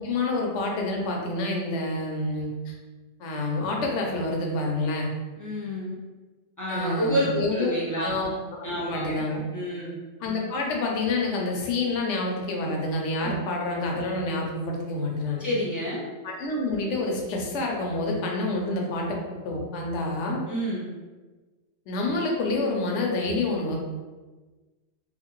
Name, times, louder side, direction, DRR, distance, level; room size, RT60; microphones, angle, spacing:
voice 1, 0.0-2.7 3.2-5.1 6.7-9.4 10.2-15.5 16.2-20.4 21.9-23.8, left 2 dB, 80° left, 0 dB, 0.9 m, -28 dB
voice 2, 5.4-6.0 6.6-8.1 8.6-9.2 9.5-9.9 13.2-13.3 15.4-16.0 20.5-20.8, equal, 30° left, -6 dB, 0.4 m, -29 dB
2.6 x 2.5 x 3.0 m, 1.3 s
omnidirectional pair, 1.2 m